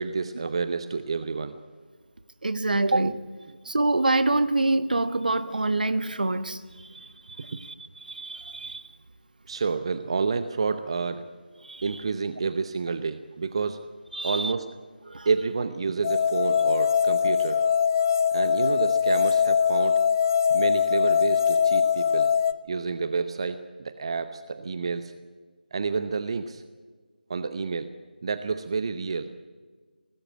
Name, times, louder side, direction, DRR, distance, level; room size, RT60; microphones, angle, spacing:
voice 1, 0.0-1.6 7.5-7.6 9.5-11.3 11.8-13.9 14.2-14.7 15.2-17.6 18.3-20.0 20.5-22.3 22.7-25.1 25.7-26.6 27.3-27.9 28.2-29.3, right 4 dB, 35° right, 11 dB, 0.8 m, -29 dB
voice 2, 2.4-3.2 3.7-6.6 7.4-7.7 8.1-8.8 11.7-11.8 14.1-14.5 15.1-15.3, right 2 dB, 60° right, 13 dB, 1.3 m, -25 dB
sound 1, 16.0-22.5, left 7 dB, 20° left, 0.5 m, -22 dB
19.0 x 16.5 x 9.0 m, 1.5 s
figure-of-eight pair, 165°, 5 cm